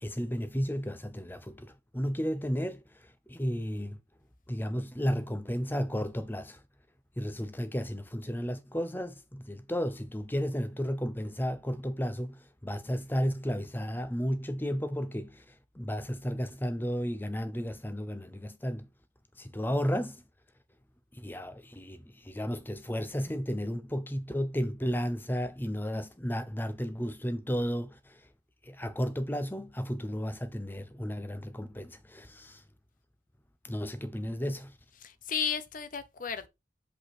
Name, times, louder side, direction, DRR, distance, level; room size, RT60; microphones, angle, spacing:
voice 1, 0.0-2.8 3.3-4.0 4.5-6.6 7.2-15.4 15.7-18.9 19.4-20.2 21.1-28.2 28.6-32.6 33.6-34.7, equal, 10° left, 0.8 m, -33 dB
voice 2, 34.9-36.5, left 7 dB, 45° left, 0.8 m, -34 dB
6.4 x 5.3 x 4.2 m
head